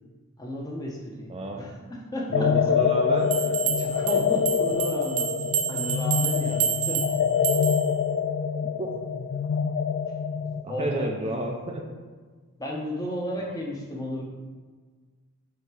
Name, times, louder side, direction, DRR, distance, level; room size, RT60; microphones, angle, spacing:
voice 1, 0.4-1.3 1.6-2.7 3.4-5.3 5.7-7.1 10.7-11.1 12.6-14.2, equal, 15° left, -2 dB, 1.0 m, -33 dB
voice 2, 1.3-1.6 2.3-3.3 8.6-8.9 10.6-11.9, right 1 dB, 25° right, 1 dB, 0.5 m, -30 dB
sound 1, 2.3-10.6, left 6 dB, 60° left, 0.3 m, -25 dB
sound 2, 3.3-8.0, right 8 dB, 85° right, 0.5 m, -29 dB
7.9 x 2.9 x 4.7 m, 1.5 s
head